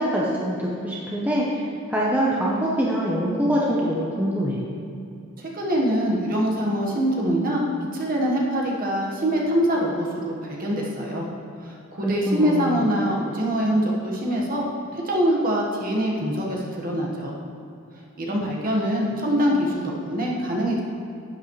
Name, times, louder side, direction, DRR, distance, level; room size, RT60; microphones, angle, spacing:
voice 1, 0.0-1.6 1.9-4.6 12.0-12.8, equal, 10° right, -5 dB, 0.8 m, -24 dB
voice 2, 5.4-7.6 7.9-11.3 11.6-17.4 18.2-20.8, equal, 40° right, -3 dB, 1.4 m, -24 dB
11.0 x 8.2 x 3.2 m, 2.6 s
head